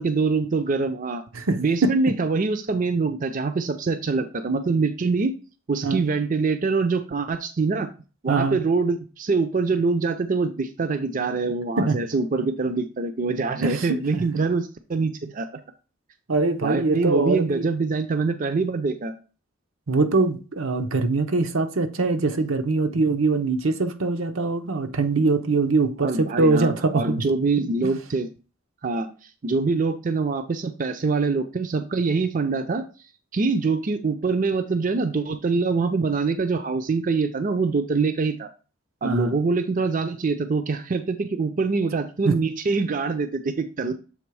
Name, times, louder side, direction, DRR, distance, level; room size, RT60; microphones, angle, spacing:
voice 1, 0.0-1.2 1.6-5.3 5.7-7.9 8.2-15.5 16.6-19.1 26.0-28.3 28.8-29.1 29.4-32.8 33.3-38.5 39.0-43.9, right 4 dB, 40° right, 0.5 m, -24 dB
voice 2, 1.3-2.1 5.8-6.0 8.3-8.6 11.8-12.0 13.6-14.0 16.3-17.7 19.9-27.2 27.8-27.9 39.0-39.4 42.2-42.4, right 3 dB, 85° right, 0.8 m, -23 dB
7.1 x 3.4 x 4.7 m
head